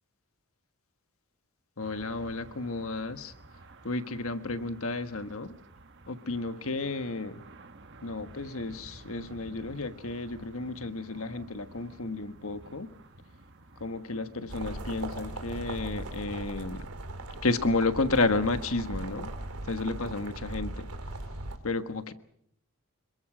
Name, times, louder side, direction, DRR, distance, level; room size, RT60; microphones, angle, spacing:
voice 1, 1.8-3.3 3.8-5.6 6.1-7.4 8.0-12.9 13.8-16.9 17.4-19.3 19.6-20.9 21.6-22.1, left 3 dB, 65° left, 10 dB, 1.4 m, -32 dB
sound 1, 1.8-19.6, right 2 dB, 55° right, 1.6 m, -52 dB
sound 2, 14.5-21.6, right 2 dB, 85° right, 2.9 m, -39 dB
27.0 x 23.0 x 6.2 m, 0.69 s
head